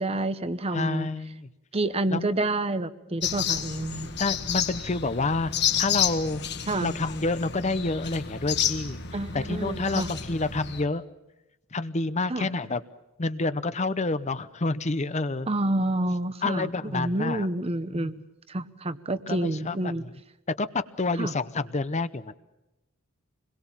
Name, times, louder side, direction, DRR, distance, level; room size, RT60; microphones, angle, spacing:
voice 1, 0.0-1.1 1.7-4.1 6.7-6.9 9.1-10.1 12.3-12.5 15.5-18.2 18.5-20.0 21.2-21.3, right 1 dB, 30° right, 13 dB, 0.9 m, -28 dB
voice 2, 0.7-1.5 2.1-2.3 4.2-5.5 5.8-6.4 6.8-9.0 9.3-11.0 11.7-12.8 13.2-15.5 16.4-17.5 17.9-18.1 19.3-20.1 20.6-22.3, left 3 dB, 35° left, 13 dB, 0.8 m, -28 dB
sound 1, 3.2-10.8, left 8 dB, 55° left, 2.0 m, -30 dB
26.5 x 21.5 x 7.3 m, 0.98 s
head